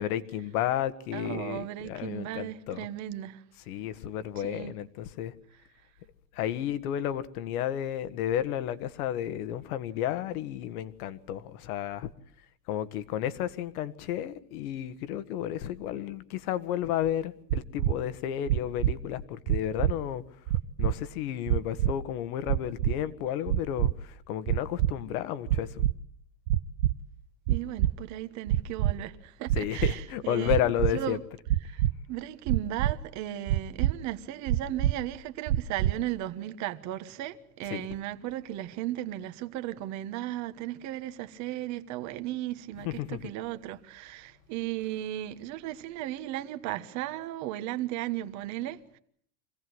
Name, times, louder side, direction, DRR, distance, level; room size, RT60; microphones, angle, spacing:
voice 1, 0.0-2.9 3.7-5.3 6.3-12.1 12.7-20.2 20.8-25.8 29.5-31.2 37.7-37.9 42.8-43.2, left 11 dB, 70° left, 1.6 m, -32 dB
voice 2, 1.1-3.4 4.3-4.8 27.5-31.2 31.6-49.0, right 13 dB, 35° right, 1.3 m, -36 dB
sound 1, 17.5-17.9 18.5-18.9 19.5-19.9 20.5-20.9 21.5-21.9 22.5-22.9 23.5-23.9 24.5-24.9 25.5-25.9 26.5-26.9 27.5-27.9 28.5-28.9 29.5-29.9 30.5-30.9 31.5-31.9 32.5-32.9 33.5-33.9 34.5-34.9 35.5-35.9, right 13 dB, 55° right, 0.8 m, -25 dB
25.5 x 17.0 x 7.9 m
supercardioid pair, 165°, 46 cm